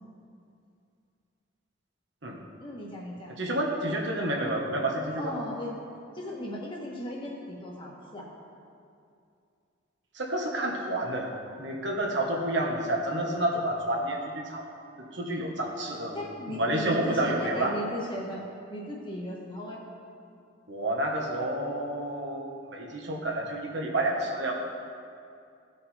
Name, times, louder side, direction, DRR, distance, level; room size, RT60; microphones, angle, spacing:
voice 1, 2.6-3.3 5.2-5.8 6.1-8.3 16.1-19.8, equal, 25° left, -3 dB, 1.5 m, -37 dB
voice 2, 3.4-5.3 10.1-11.3 11.6-14.7 15.0-17.7 20.7-24.5, right 1 dB, 65° right, -1 dB, 1.3 m, -29 dB
15.0 x 5.1 x 4.3 m, 2.4 s
head